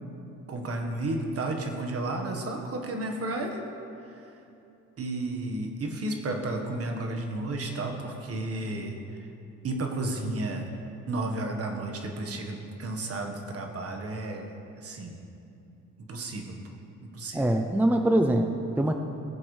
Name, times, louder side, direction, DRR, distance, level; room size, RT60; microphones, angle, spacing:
voice 1, 0.5-3.6 4.1-4.2 5.0-9.2 9.6-10.7 11.1-14.5 14.8-15.1 16.1-16.6 17.0-17.5, right 2 dB, 50° right, 3 dB, 1.5 m, -32 dB
voice 2, 17.3-18.9, right 1 dB, 5° right, 5 dB, 0.6 m, -23 dB
17.5 x 7.7 x 3.3 m, 2.7 s
cardioid pair, 90°, 30 cm